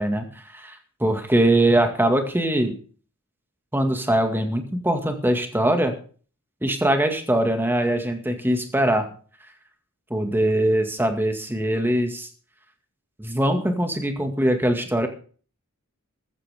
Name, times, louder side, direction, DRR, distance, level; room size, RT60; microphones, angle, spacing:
voice 1, 0.0-2.7 3.7-5.9 6.6-9.0 10.1-12.3 13.2-15.1, right 1 dB, 10° right, 5 dB, 2.0 m, -22 dB
14.0 x 14.0 x 3.6 m, 0.42 s
head